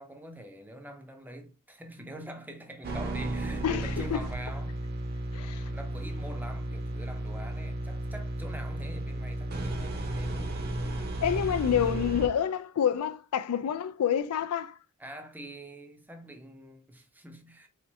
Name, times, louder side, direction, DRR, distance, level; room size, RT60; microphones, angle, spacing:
voice 1, 0.0-4.8 5.6-10.6 15.0-17.7, right 1 dB, 10° right, 0.6 m, -45 dB
sound 1, 2.8-12.3, right 1 dB, 45° right, 0.7 m, -34 dB
voice 2, 3.6-4.2 5.3-5.7 11.2-14.8, left 8 dB, 80° left, 0.3 m, -28 dB
4.2 x 2.5 x 2.7 m
head